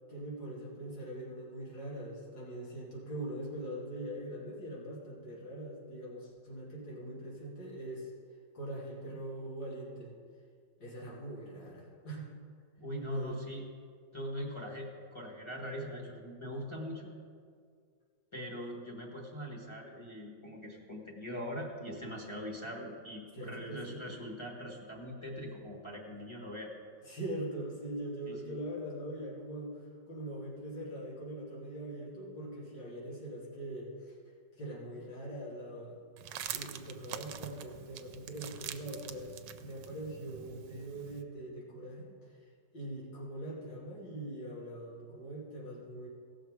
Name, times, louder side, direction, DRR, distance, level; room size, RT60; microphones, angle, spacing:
voice 1, 0.1-8.1 8.5-10.1 10.8-12.3 13.0-13.5 23.3-24.0 27.0-34.2 34.6-36.0 36.5-42.4 42.7-46.1, right 1 dB, 80° left, -5 dB, 3.1 m, -42 dB
voice 2, 12.8-13.7 14.1-17.1 18.3-26.7 28.3-28.5, equal, 15° left, -2 dB, 1.3 m, -42 dB
sound 1, 36.2-41.2, right 9 dB, 80° right, 1.3 m, -45 dB
17.0 x 6.4 x 4.8 m, 2.1 s
omnidirectional pair, 2.0 m